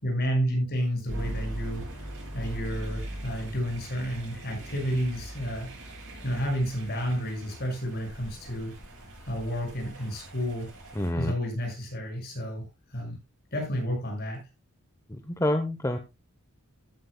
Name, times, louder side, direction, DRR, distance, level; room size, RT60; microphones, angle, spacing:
voice 1, 0.0-1.8 2.3-5.7 6.2-8.7 9.3-10.7 11.2-13.2 13.5-14.4, equal, 45° left, 1 dB, 6.3 m, -31 dB
sound 1, 1.1-11.1, right 1 dB, 60° right, 7.7 m, -40 dB
voice 2, 11.0-11.3 15.1-16.0, left 1 dB, 15° left, 7 dB, 0.8 m, -27 dB
14.5 x 11.5 x 2.2 m, 0.24 s
head